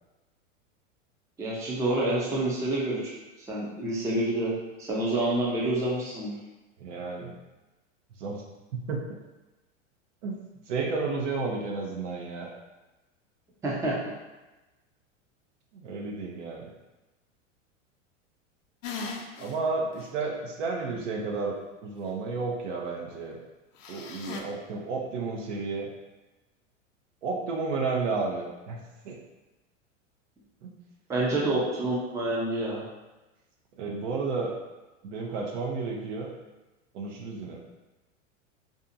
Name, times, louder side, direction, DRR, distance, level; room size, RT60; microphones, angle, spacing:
voice 1, 1.4-3.1 3.4-4.5 4.8-6.3 13.6-14.0 31.1-32.8, right 1 dB, 10° right, -5 dB, 0.4 m, -28 dB
voice 2, 6.8-7.3 8.2-8.4 8.9-9.2 10.2-10.4 10.7-12.5 15.7-16.7 19.4-21.5 21.8-23.4 23.9-25.9 27.2-28.8 29.0-29.2 30.6-30.7 33.8-34.5 35.0-36.3 36.9-37.6, right 4 dB, 70° right, 0 dB, 0.7 m, -32 dB
sound 1, 18.8-19.5 20.0-20.1 23.8-24.4, left 4 dB, 70° left, 0.6 m, -37 dB
2.6 x 2.4 x 2.6 m, 1.1 s
hypercardioid pair, 105°, 38 cm